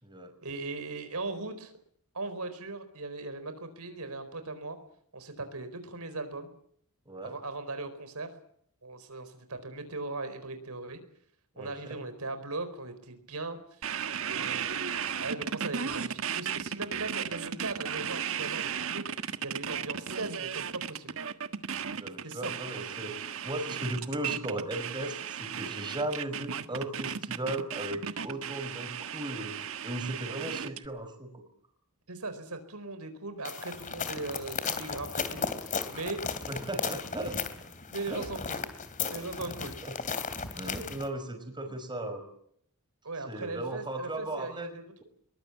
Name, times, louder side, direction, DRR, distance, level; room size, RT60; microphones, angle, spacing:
voice 1, 0.4-1.7 2.1-4.8 5.1-6.5 7.2-8.3 8.8-11.0 11.6-13.6 14.3-19.0 19.4-21.2 22.2-22.5 32.1-36.2 37.9-38.6 39.1-39.8 41.7-41.8 43.0-44.8, right 3 dB, 80° right, 10 dB, 4.4 m, -39 dB
voice 2, 7.1-7.4 11.5-12.0 21.9-23.2 23.4-31.4 36.5-37.4 38.1-38.3 39.0-39.1 39.4-39.5 39.8-39.9 40.5-42.2 43.3-44.7, right 1 dB, 20° right, 6 dB, 5.9 m, -36 dB
sound 1, 13.8-30.9, right 8 dB, 65° right, 1.5 m, -35 dB
sound 2, 33.4-41.1, left 5 dB, 35° left, 2.8 m, -35 dB
22.5 x 21.5 x 8.5 m, 0.66 s
head